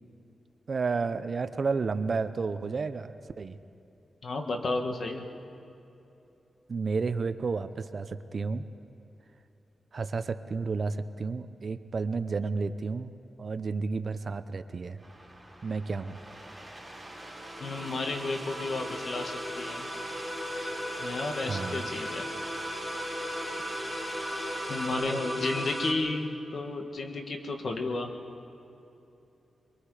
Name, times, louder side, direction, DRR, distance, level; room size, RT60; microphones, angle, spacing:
voice 1, 0.7-3.6 6.7-8.6 9.9-13.1 13.4-15.0 15.6-16.2 21.5-21.9, right 4 dB, 50° right, 11 dB, 0.7 m, -31 dB
voice 2, 4.2-5.3 17.6-19.9 20.6-20.7 21.0-22.3 24.4-28.1, left 3 dB, 55° left, 4 dB, 1.8 m, -33 dB
sound 1, 14.9-24.9, right 1 dB, 5° right, 5.6 m, -45 dB
sound 2, 16.8-25.9, equal, 15° left, 3.2 m, -36 dB
24.5 x 22.5 x 5.0 m, 2.9 s
wide cardioid pair, 110°, 0 cm